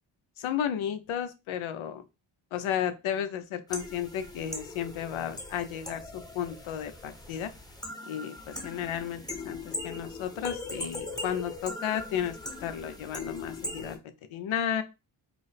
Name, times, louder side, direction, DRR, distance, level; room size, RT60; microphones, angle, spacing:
voice 1, 0.4-2.0 2.5-7.5 8.1-14.0 14.3-14.8, left 9 dB, 70° left, 10 dB, 0.8 m, -33 dB
sound 1, 3.7-14.0, left 2 dB, 10° left, 0.9 m, -40 dB
5.0 x 2.0 x 3.3 m, 0.26 s
cardioid pair, 75°, 50 cm